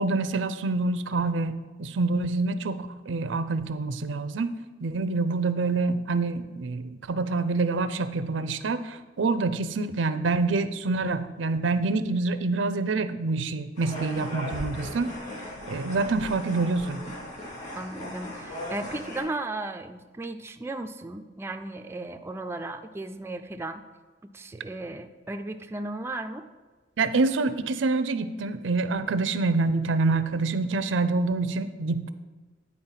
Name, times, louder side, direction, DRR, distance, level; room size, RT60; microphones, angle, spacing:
voice 1, 0.0-4.5 4.8-15.1 15.7-17.0 27.0-32.1, right 3 dB, 85° right, 12 dB, 0.5 m, -26 dB
sound 1, 13.8-19.2, left 1 dB, 40° left, 3.0 m, -38 dB
voice 2, 17.7-23.8 24.3-26.5, right 2 dB, 15° right, 6 dB, 0.3 m, -35 dB
9.5 x 4.3 x 5.6 m, 1.3 s
head